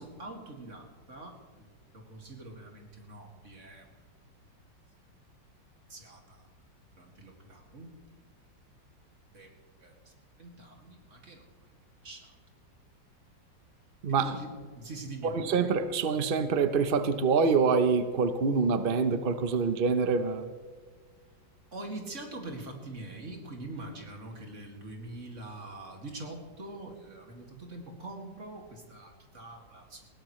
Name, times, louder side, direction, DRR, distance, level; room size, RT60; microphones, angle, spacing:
voice 1, 0.0-1.7 1.9-3.9 5.9-6.5 7.0-8.0 9.3-9.5 9.8-9.9 10.4-11.5 12.0-12.3 14.2-14.5 14.8-15.4 21.7-30.1, right 2 dB, 40° right, 2 dB, 2.4 m, -44 dB
voice 2, 15.2-20.4, right 5 dB, 60° right, 10 dB, 0.5 m, -26 dB
20.0 x 16.5 x 3.1 m, 1.5 s
omnidirectional pair, 2.0 m